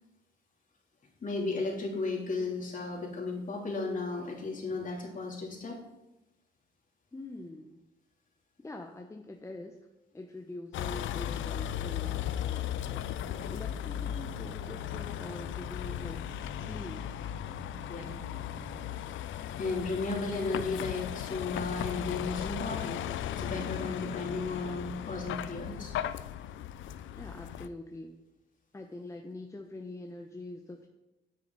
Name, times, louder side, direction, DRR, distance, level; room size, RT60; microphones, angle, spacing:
voice 1, 1.2-5.8 17.9-18.1 19.6-23.0 23.4-26.0, left 3 dB, 40° left, -1 dB, 3.1 m, -34 dB
voice 2, 7.1-7.8 8.6-9.8 10.1-13.0 13.5-16.2 16.6-17.1 23.8-24.0 27.1-28.2 28.7-30.9, left 2 dB, 15° left, 3 dB, 0.8 m, -44 dB
Vehicle, 10.7-27.7, left 11 dB, 75° left, 0.5 m, -36 dB
sound 1, 12.9-19.0, right 1 dB, 40° right, 2.8 m, -50 dB
9.6 x 9.1 x 4.0 m, 0.98 s
cardioid pair, 90°, 20 cm